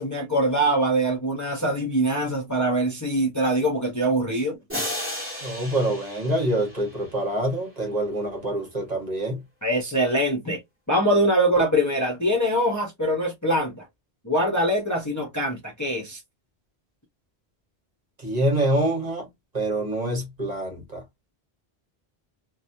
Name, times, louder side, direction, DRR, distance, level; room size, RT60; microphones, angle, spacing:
voice 1, 0.0-4.6 9.6-10.6 10.9-13.9 14.2-16.2, right 1 dB, 20° left, 0.7 m, -23 dB
sound 1, 4.7-7.4, left 1 dB, 10° right, 1.3 m, -34 dB
voice 2, 5.4-9.4 18.2-19.3 19.5-21.0, right 1 dB, 40° right, 1.2 m, -26 dB
3.0 x 2.2 x 2.6 m
omnidirectional pair, 1.1 m